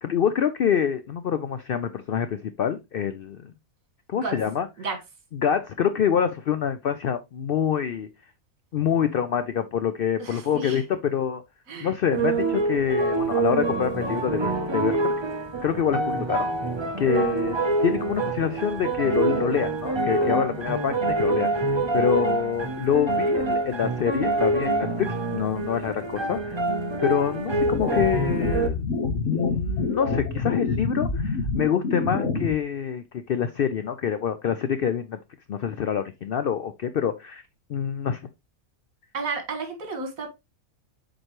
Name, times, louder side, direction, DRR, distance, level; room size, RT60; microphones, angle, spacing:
voice 1, 0.0-3.5 4.1-4.7 5.3-8.1 8.7-11.4 11.8-15.1 15.6-16.5 17.0-21.5 21.9-26.6 27.0-28.9 29.2-35.2 35.5-37.4 37.7-38.2, left 8 dB, 75° left, 0.5 m, -26 dB
voice 2, 10.2-10.8 11.7-11.9 39.1-40.3, right 4 dB, 70° right, 1.9 m, -32 dB
sound 1, 12.1-28.7, right 2 dB, 30° right, 0.5 m, -26 dB
sound 2, 27.5-32.5, left 3 dB, 55° left, 1.5 m, -27 dB
7.6 x 4.4 x 3.0 m
omnidirectional pair, 1.5 m